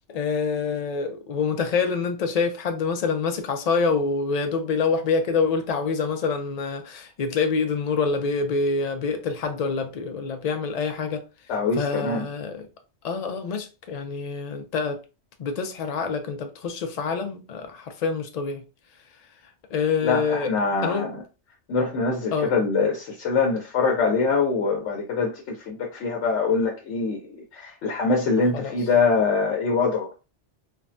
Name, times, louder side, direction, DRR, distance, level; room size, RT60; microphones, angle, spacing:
voice 1, 0.1-11.2 11.7-12.7 13.0-15.0 15.4-18.6 19.7-20.5 20.8-21.1 22.3-22.5 28.5-28.8, left 5 dB, 65° left, 0.4 m, -26 dB
voice 2, 11.5-12.2 20.0-21.2 21.7-27.2 27.5-30.2, left 4 dB, 80° left, 0.9 m, -24 dB
3.3 x 2.1 x 2.5 m
omnidirectional pair, 1.2 m